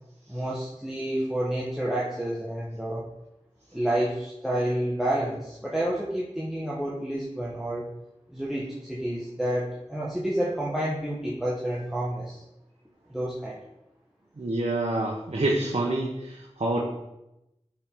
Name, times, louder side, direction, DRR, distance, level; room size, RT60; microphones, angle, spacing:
voice 1, 0.3-3.0 3.7-7.8 8.3-12.4 13.1-13.6, right 1 dB, 5° right, -6 dB, 1.4 m, -29 dB
voice 2, 14.4-16.8, right 2 dB, 65° right, -3 dB, 1.2 m, -27 dB
11.5 x 4.7 x 3.9 m, 0.89 s
wide cardioid pair, 60°, 11 cm